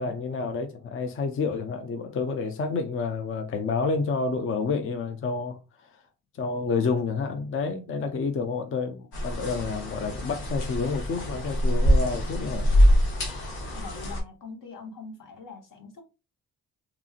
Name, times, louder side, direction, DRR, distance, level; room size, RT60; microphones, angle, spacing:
voice 1, 0.0-5.6 6.4-12.7, left 4 dB, 35° left, 0.5 m, -29 dB
sound 1, 9.1-14.2, equal, 90° left, 0.9 m, -24 dB
voice 2, 13.7-16.0, left 4 dB, 60° left, 1.0 m, -43 dB
2.9 x 2.5 x 2.4 m
supercardioid pair, 60°, 37 cm